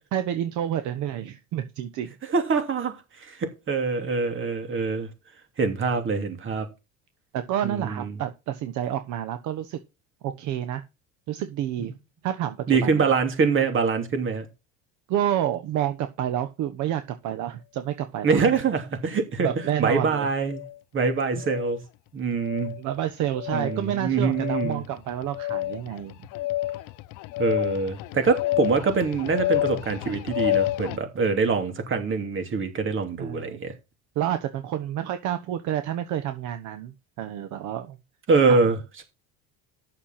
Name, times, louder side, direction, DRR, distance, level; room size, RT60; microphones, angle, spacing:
voice 1, 0.1-2.1 7.3-9.8 10.2-10.8 11.3-11.9 12.2-13.1 15.1-18.5 19.4-20.3 22.8-26.2 33.2-33.6 34.1-38.0 38.5-38.6, right 11 dB, 60° right, 1.2 m, -29 dB
voice 2, 2.3-5.1 5.6-6.7 7.6-8.2 11.8-11.9 12.7-14.5 18.2-19.5 19.8-20.6 20.9-21.8 22.1-22.7 23.5-24.8 27.4-33.7 38.3-38.8, right 4 dB, 35° right, 3.0 m, -24 dB
sound 1, 19.5-19.7 20.4-20.8 21.4-21.8 22.4-22.8 23.3-23.8 24.3-31.0, left 15 dB, 65° left, 0.8 m, -29 dB
8.9 x 6.8 x 5.9 m
supercardioid pair, 110°, 33 cm